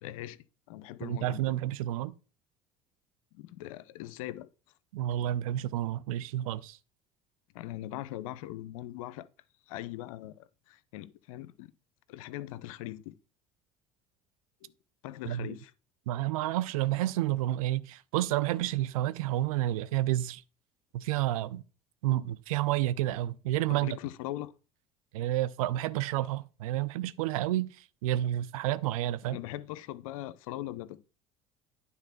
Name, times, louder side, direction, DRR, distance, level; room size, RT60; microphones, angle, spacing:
voice 1, 0.0-0.4 0.7-1.4 3.3-4.5 7.5-9.3 9.7-11.7 12.1-13.1 14.6-14.7 15.0-15.7 23.7-24.5 29.3-31.0, left 14 dB, 70° left, 0.5 m, -40 dB
voice 2, 1.0-2.1 4.9-6.8 15.3-15.6 16.1-20.4 20.9-21.6 22.0-23.9 25.1-29.4, right 14 dB, 70° right, 0.5 m, -30 dB
9.7 x 3.6 x 5.9 m
figure-of-eight pair, 60°, 18 cm